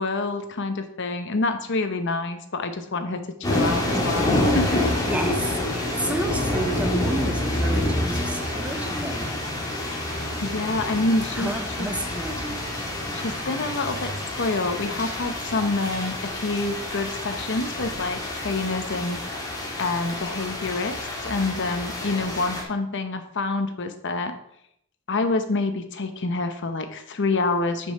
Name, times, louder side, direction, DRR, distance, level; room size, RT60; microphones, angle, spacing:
voice 1, 0.0-4.8 10.4-11.5 11.8-11.9 13.1-14.1 14.4-19.2 19.8-24.3 25.1-27.9, left 3 dB, 55° left, 8 dB, 0.9 m, -27 dB
sound 1, 3.4-22.6, left 1 dB, 20° left, 1.6 m, -28 dB
voice 2, 5.1-9.3 11.3-12.6, right 1 dB, 5° right, 5 dB, 0.8 m, -31 dB
6.3 x 5.4 x 5.5 m, 0.75 s
head